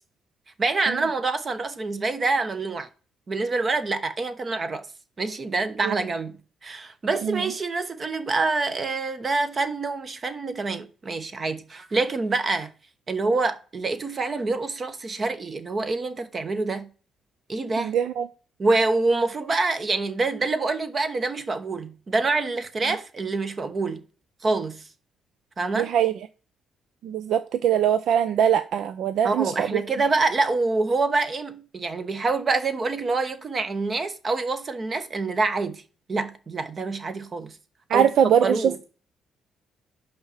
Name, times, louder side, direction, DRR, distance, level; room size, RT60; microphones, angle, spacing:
voice 1, 0.6-2.9 3.3-4.9 5.2-12.7 13.1-16.9 17.5-17.9 18.6-24.0 24.4-24.8 25.6-25.9 29.2-35.8 36.1-37.6 37.9-38.9, right 3 dB, 40° right, 1.1 m, -26 dB
voice 2, 17.8-18.3 25.7-26.1 27.0-29.8 37.9-38.9, right 9 dB, 75° right, 0.5 m, -22 dB
5.6 x 5.0 x 5.8 m
cardioid pair, 90°, 0 cm